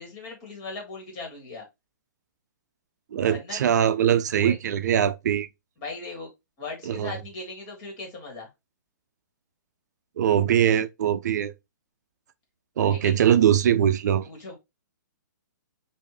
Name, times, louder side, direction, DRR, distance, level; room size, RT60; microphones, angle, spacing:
voice 1, 0.0-1.7 3.2-3.6 4.3-4.6 5.8-6.3 6.6-8.5 12.9-13.1 14.3-14.6, left 3 dB, 35° left, 1.9 m, -38 dB
voice 2, 3.1-5.5 6.9-7.1 10.2-11.5 12.8-14.3, right 9 dB, 65° right, 0.4 m, -22 dB
3.4 x 2.6 x 3.3 m
hypercardioid pair, 135°, 10 cm